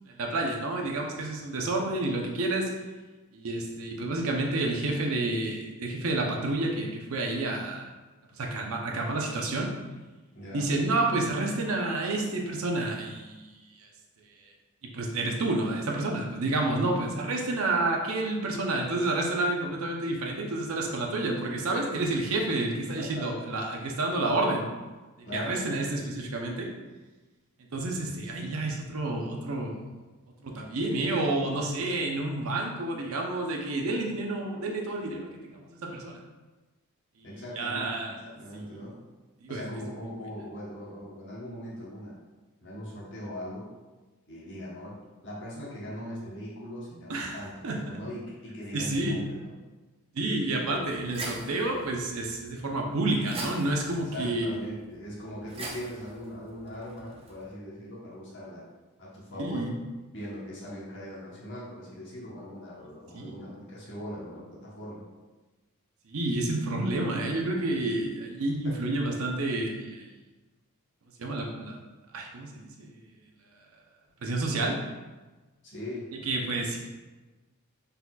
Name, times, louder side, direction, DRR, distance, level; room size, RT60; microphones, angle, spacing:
voice 1, 0.1-2.7 3.3-7.9 8.4-9.7 10.5-13.9 14.8-24.6 25.3-26.7 27.7-29.8 30.4-36.2 37.6-38.2 38.8-38.9 39.4-39.7 47.1-47.4 47.6-48.0 48.7-49.2 50.1-54.5 59.4-59.8 63.1-63.3 66.1-70.0 71.2-71.8 72.1-72.9 74.2-74.8 76.3-76.8, right 2 dB, 70° right, 1 dB, 0.7 m, -29 dB
voice 2, 10.3-10.7 23.0-23.4 25.2-25.7 37.2-39.0 39.5-42.2 42.6-43.7 44.3-49.5 53.9-58.7 59.0-59.7 60.1-65.0 68.6-68.8 75.6-76.1, equal, 55° left, -6 dB, 1.1 m, -40 dB
sound 1, 50.7-57.5, right 2 dB, 25° right, 0.4 m, -44 dB
4.1 x 4.0 x 2.3 m, 1.2 s
head